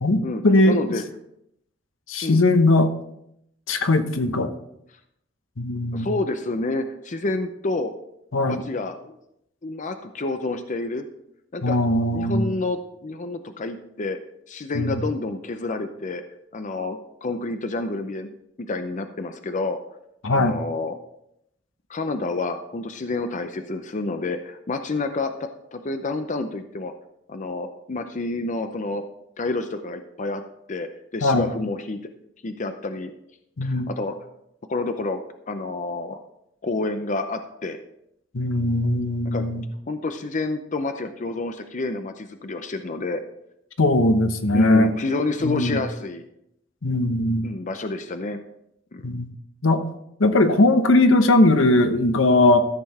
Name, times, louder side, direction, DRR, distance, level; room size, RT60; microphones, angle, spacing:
voice 1, 0.0-0.8 2.1-2.9 3.7-4.5 5.6-6.1 8.3-8.6 11.6-12.5 14.7-15.0 20.2-20.6 31.2-31.5 33.6-33.9 38.3-39.6 43.8-44.9 45.4-45.8 46.8-47.5 49.0-49.3 49.6-49.8 50.2-52.7, left 2 dB, 75° left, 8 dB, 1.0 m, -19 dB
voice 2, 0.7-1.0 2.2-2.4 5.9-7.9 8.5-9.2 9.6-11.0 11.5-11.8 12.1-14.2 14.5-16.2 16.5-18.3 18.6-19.8 20.3-21.0 21.9-26.9 27.3-29.0 29.4-30.4 30.7-32.0 32.4-33.1 33.6-34.1 34.7-35.2 35.5-36.2 36.6-37.8 39.2-39.4 39.9-43.2 44.5-46.3 47.4-48.4 48.9-49.1, left 2 dB, 40° left, 8 dB, 0.6 m, -28 dB
14.0 x 6.8 x 4.2 m, 0.78 s
head